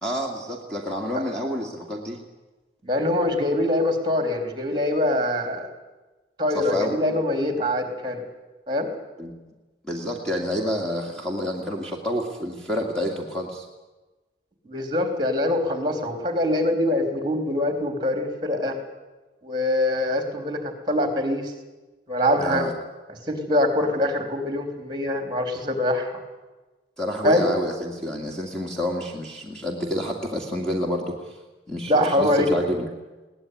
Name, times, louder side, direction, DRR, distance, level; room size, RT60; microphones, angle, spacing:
voice 1, 0.0-2.2 6.5-7.0 9.2-9.3 9.8-13.7 22.4-22.7 27.0-31.4 31.7-32.9, equal, 5° left, 0 dB, 2.2 m, -28 dB
voice 2, 2.8-5.7 6.4-8.2 8.7-8.9 14.7-18.8 19.4-21.5 22.1-22.6 23.3-26.1 27.2-27.4 31.9-32.5, left 1 dB, 25° right, 6 dB, 3.4 m, -24 dB
21.5 x 18.5 x 9.5 m, 1.2 s
head